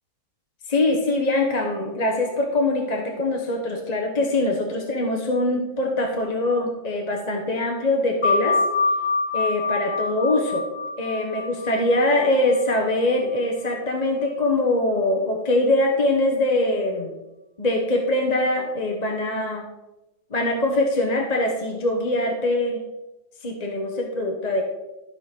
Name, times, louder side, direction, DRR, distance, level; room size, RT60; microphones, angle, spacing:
voice 1, 0.7-8.6 9.3-10.7 11.0-17.1 17.6-19.6 20.3-22.8 23.4-24.6, left 2 dB, 30° left, 1 dB, 1.2 m, -23 dB
sound 1, 8.2-13.4, left 3 dB, 45° left, 1.8 m, -26 dB
13.5 x 4.8 x 6.0 m, 0.99 s
omnidirectional pair, 1.6 m